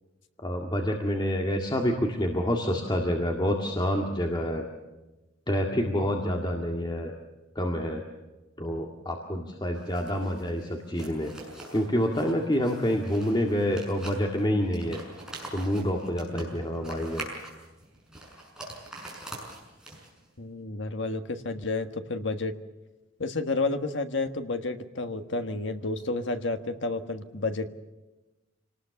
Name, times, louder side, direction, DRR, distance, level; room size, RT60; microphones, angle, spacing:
voice 1, 0.4-4.6 5.5-7.1 7.6-8.0 8.6-11.3 11.7-15.0 15.5-17.3, equal, 25° left, 2 dB, 2.0 m, -27 dB
sound 1, 9.7-20.3, right 2 dB, 5° right, 6.4 m, -44 dB
voice 2, 20.4-22.5 23.2-27.7, left 3 dB, 65° left, 8 dB, 1.5 m, -30 dB
26.5 x 19.0 x 7.1 m, 1.1 s
head